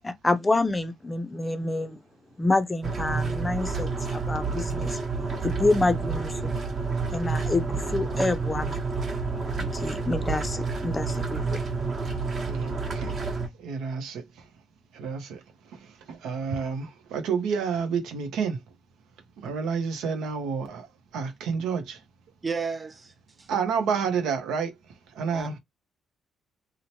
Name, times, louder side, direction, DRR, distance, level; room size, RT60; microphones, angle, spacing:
voice 1, 0.0-2.0 2.4-5.0 5.4-6.4 7.1-8.8 9.6-11.6, left 2 dB, 20° left, 0.4 m, -27 dB
sound 1, 2.8-13.5, right 4 dB, 45° right, 1.0 m, -29 dB
voice 2, 12.4-13.2 13.6-14.5 14.9-15.4 15.7-18.6 19.4-20.9 21.1-22.0 23.5-24.7 25.1-25.6, right 6 dB, 90° right, 0.7 m, -30 dB
voice 3, 22.4-23.5 25.3-25.5, right 5 dB, 30° right, 0.6 m, -33 dB
2.9 x 2.1 x 2.8 m
cardioid pair, 90°, 0 cm